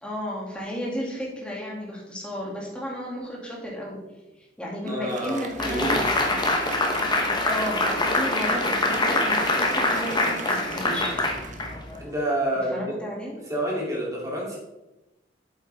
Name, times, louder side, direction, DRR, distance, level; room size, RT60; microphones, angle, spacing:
voice 1, 0.0-4.0 4.6-6.4 7.4-11.2 12.7-13.4, equal, 5° left, -4 dB, 2.3 m, -33 dB
voice 2, 4.8-6.1 12.0-12.9 13.4-14.6, right 1 dB, 20° right, -4 dB, 2.8 m, -28 dB
Applause, 4.9-12.5, right 4 dB, 45° right, 0.9 m, -39 dB
sound 1, 5.6-12.1, left 2 dB, 25° left, 1.0 m, -24 dB
8.2 x 8.0 x 3.4 m, 0.99 s
head